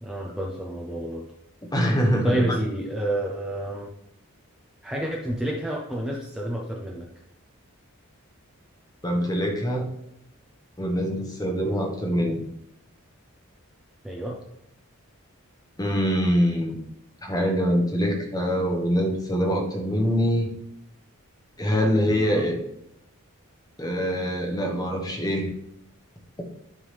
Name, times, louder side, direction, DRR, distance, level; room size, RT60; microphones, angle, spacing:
voice 1, 0.0-1.3 2.2-3.9 4.8-7.1 14.0-14.4 22.1-22.5, right 1 dB, 5° right, -3 dB, 0.7 m, -29 dB
voice 2, 1.7-2.6 9.0-9.9 10.8-12.4 15.8-16.8 17.2-20.5 21.6-22.6 23.8-25.5, equal, 20° left, 2 dB, 1.2 m, -24 dB
11.0 x 3.7 x 3.3 m, 0.77 s
head